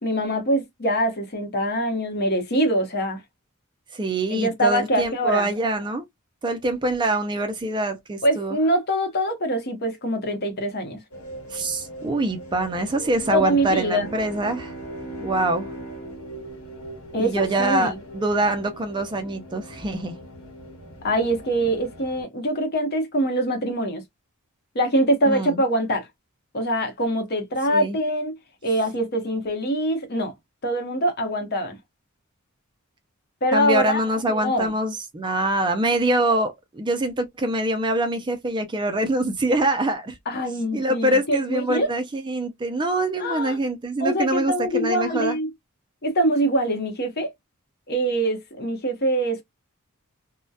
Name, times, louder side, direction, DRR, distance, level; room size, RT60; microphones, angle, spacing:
voice 1, 0.0-3.2 4.3-5.5 8.2-11.0 13.3-14.1 17.1-18.0 21.0-24.0 24.7-26.1 26.5-28.3 28.6-30.3 30.6-31.8 33.4-34.0 34.3-34.7 40.3-41.9 43.2-43.6 44.0-45.5 46.0-47.3 47.9-49.4, right 1 dB, 50° left, 0.8 m, -24 dB
voice 2, 3.9-6.0 6.4-8.6 11.5-14.7 15.2-15.7 17.2-20.1 25.3-25.6 27.7-28.0 33.5-40.2 40.7-45.4, right 1 dB, 20° right, 0.4 m, -24 dB
sound 1, 11.1-22.2, equal, 80° left, 1.0 m, -40 dB
Bowed string instrument, 13.3-17.8, right 3 dB, 10° left, 1.2 m, -40 dB
2.7 x 2.1 x 2.2 m
head